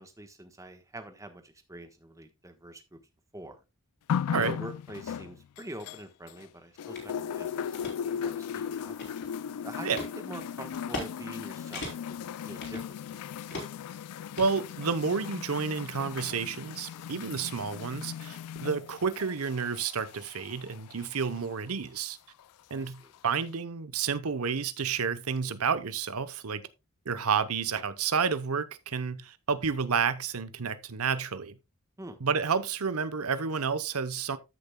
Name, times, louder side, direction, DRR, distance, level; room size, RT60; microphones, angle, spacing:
voice 1, 0.0-3.0 3.3-3.6 4.3-9.0 9.6-13.6 22.7-23.1 32.0-32.2, right 1 dB, 15° right, 1.2 m, -45 dB
sound 1, 4.1-6.5 6.8-21.5 22.4-22.5, left 8 dB, 80° left, 0.3 m, -37 dB
sound 2, 6.9-7.1 7.5-7.9 8.5-9.4 9.9-10.1 10.7-11.1 11.4-11.5 11.7-12.2 12.6-13.2 13.5-13.9 14.4-15.2, left 2 dB, 50° left, 3.6 m, -39 dB
voice 2, 14.4-22.2 22.7-26.7 27.1-31.6 32.2-34.4, right 6 dB, 75° right, 0.8 m, -30 dB
14.0 x 6.8 x 2.3 m
head